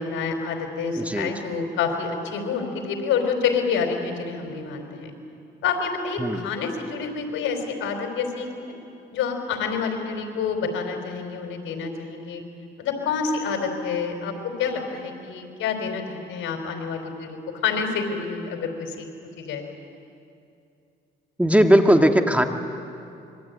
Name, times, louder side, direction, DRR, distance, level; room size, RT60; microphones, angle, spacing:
voice 1, 0.0-5.1 5.6-8.5 9.1-12.4 12.8-14.3 14.6-19.1 19.4-19.6, left 5 dB, 85° left, 4 dB, 4.3 m, -28 dB
voice 2, 1.0-1.3 6.2-6.5 21.4-22.5, equal, 5° right, 5 dB, 1.8 m, -18 dB
26.0 x 23.5 x 9.4 m, 2.6 s
cardioid pair, 90°, 20 cm